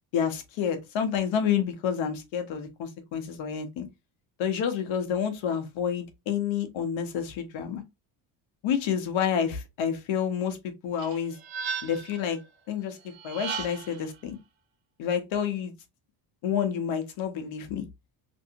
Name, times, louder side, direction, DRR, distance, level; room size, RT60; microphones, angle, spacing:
voice 1, 0.1-3.9 4.4-7.8 8.6-10.6 10.8-11.4 11.8-12.4 12.7-13.0 13.2-14.4 15.0-15.7 16.4-17.9, left 8 dB, 80° left, 1.0 m, -29 dB
sound 1, 11.0-12.2 13.2-14.0, right 6 dB, 80° right, 1.0 m, -35 dB
3.1 x 2.7 x 2.8 m
cardioid pair, 165°, 46 cm